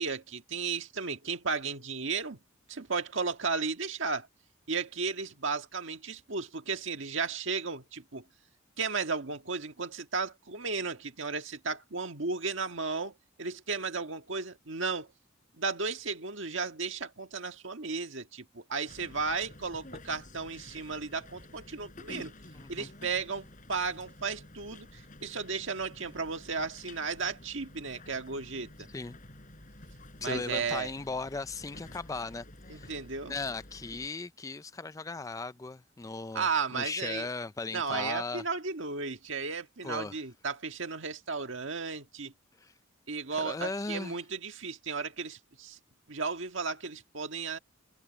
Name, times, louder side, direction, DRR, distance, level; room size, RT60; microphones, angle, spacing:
voice 1, 0.0-2.4 2.7-4.3 4.7-8.2 8.8-15.1 15.6-22.3 22.7-28.9 30.2-30.9 32.7-33.3 36.3-37.3 37.7-42.3 43.1-45.8 46.1-47.6, right 4 dB, 65° right, 1.7 m, -34 dB
sound 1, 18.9-34.1, left 1 dB, 40° left, 7.4 m, -51 dB
voice 2, 22.5-22.9 28.9-29.2 30.2-33.0 33.3-38.4 39.8-40.2 42.6-42.7 43.3-44.2, left 3 dB, 15° left, 0.3 m, -37 dB
head